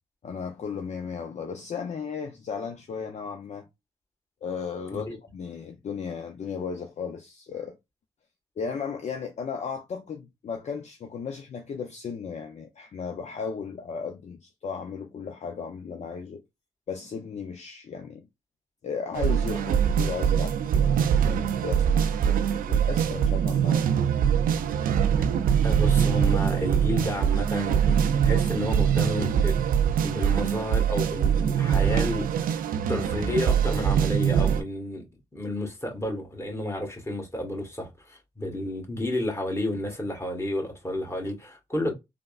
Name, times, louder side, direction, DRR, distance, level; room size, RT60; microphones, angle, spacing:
voice 1, 0.2-3.7 4.4-7.8 8.6-16.4 16.9-18.3 18.8-23.9 27.0-27.2, left 6 dB, 50° left, 0.5 m, -35 dB
sound 1, 19.1-34.6, right 8 dB, 70° right, 0.4 m, -23 dB
voice 2, 25.6-29.7 30.0-32.6 32.9-35.1 35.3-41.9, left 1 dB, 20° left, 1.5 m, -31 dB
3.3 x 2.1 x 2.4 m
supercardioid pair, 50°, 15 cm